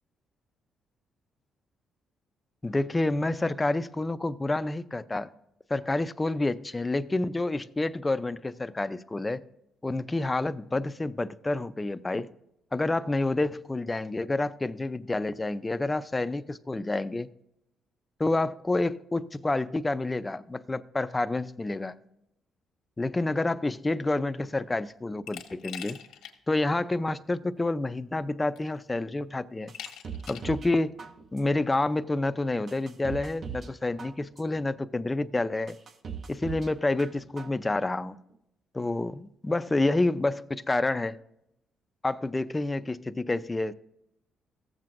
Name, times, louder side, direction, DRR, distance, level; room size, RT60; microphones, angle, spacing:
voice 1, 2.6-5.3 5.7-9.4 9.8-12.3 12.7-17.3 18.2-22.0 23.0-26.0 26.5-29.7 30.3-30.9 31.3-35.8 36.3-38.2 38.7-41.2 42.0-43.7, left 2 dB, 20° left, 0.4 m, -28 dB
Glass, 25.3-26.4 26.8-26.9 28.0-28.1 28.6-29.0 29.7-30.6, left 9 dB, 90° left, 1.2 m, -42 dB
sound 1, 29.7-30.7 31.0-31.6 32.1-32.2 32.7-33.7 34.0-34.6 35.1-35.2 35.7-36.7 37.0-37.6 37.9-38.0, right 6 dB, 50° right, 0.8 m, -40 dB
15.0 x 7.5 x 2.5 m
cardioid pair, 90°, 0 cm